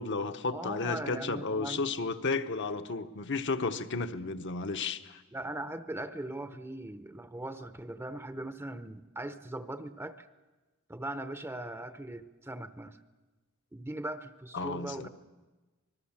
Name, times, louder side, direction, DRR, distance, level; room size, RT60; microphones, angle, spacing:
voice 1, 0.0-5.2 14.5-15.1, left 4 dB, 55° left, 8 dB, 1.1 m, -33 dB
voice 2, 0.5-1.9 5.3-10.3 10.9-13.0 13.7-15.1, right 1 dB, 10° right, 10 dB, 0.7 m, -40 dB
26.0 x 20.5 x 7.4 m, 1.2 s
head